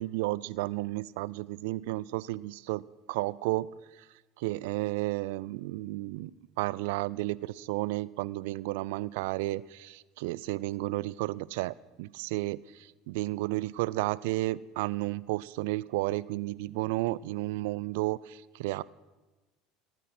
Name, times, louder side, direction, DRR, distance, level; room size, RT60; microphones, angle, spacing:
voice 1, 0.0-2.8 3.1-3.7 3.9-4.1 4.4-18.8, right 19 dB, 70° right, 21 dB, 0.4 m, -32 dB
18.0 x 9.1 x 6.0 m, 1.2 s
hypercardioid pair, 80°, 0 cm